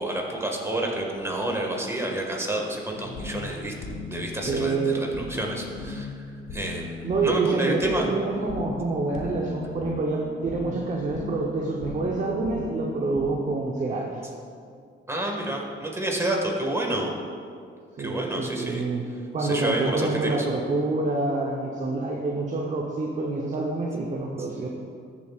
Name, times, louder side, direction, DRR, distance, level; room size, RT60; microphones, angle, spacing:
voice 1, 0.0-3.7 4.1-6.1 6.5-8.1 15.1-17.1 18.0-18.8 19.4-20.5, right 1 dB, 15° right, 0 dB, 1.8 m, -29 dB
sound 1, 2.9-13.3, left 3 dB, 85° left, 1.3 m, -37 dB
voice 2, 4.5-5.3 7.0-14.2 18.0-19.0 19.3-24.7, right 3 dB, 40° right, -1 dB, 0.9 m, -27 dB
14.0 x 7.3 x 2.5 m, 2.3 s
cardioid pair, 90°, 20 cm